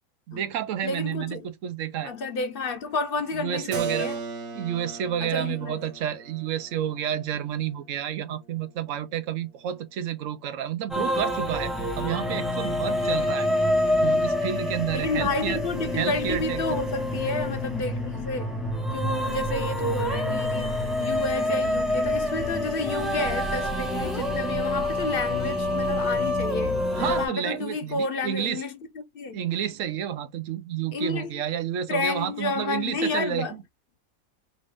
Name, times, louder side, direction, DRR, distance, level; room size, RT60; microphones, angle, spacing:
voice 1, 0.3-2.1 3.4-4.1 4.5-13.5 13.9-15.6 15.9-16.8 26.9-28.6 29.3-33.5, right 10 dB, 65° right, 0.9 m, -30 dB
voice 2, 0.8-1.5 2.0-4.2 5.2-5.8 14.9-18.6 18.9-29.4 30.9-31.4 31.9-33.5, left 3 dB, 45° left, 0.9 m, -31 dB
Keyboard (musical), 3.7-9.3, right 5 dB, 90° right, 1.3 m, -37 dB
sound 1, 10.9-27.3, left 1 dB, ahead, 0.6 m, -27 dB
5.1 x 2.6 x 3.3 m
omnidirectional pair, 1.6 m